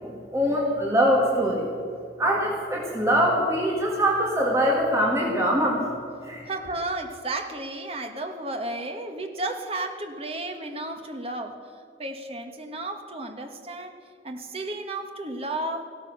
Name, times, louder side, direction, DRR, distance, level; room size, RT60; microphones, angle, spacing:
voice 1, 0.0-1.7 2.2-5.8 6.2-6.4, equal, 15° right, -2 dB, 1.7 m, -23 dB
voice 2, 6.4-11.6 12.0-13.9 14.2-15.8, right 2 dB, 30° right, 5 dB, 1.3 m, -33 dB
15.5 x 12.5 x 6.5 m, 2.3 s
head